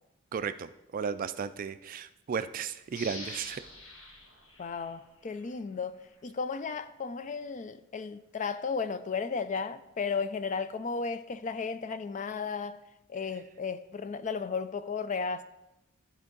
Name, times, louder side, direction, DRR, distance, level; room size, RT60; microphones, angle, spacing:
voice 1, 0.3-3.6, right 6 dB, 40° right, 0.3 m, -34 dB
sound 1, 2.9-5.6 6.1-6.2, left 2 dB, 75° left, 1.7 m, -46 dB
voice 2, 4.6-12.8 13.1-15.4, left 5 dB, 35° left, 0.4 m, -34 dB
13.0 x 4.4 x 3.9 m
head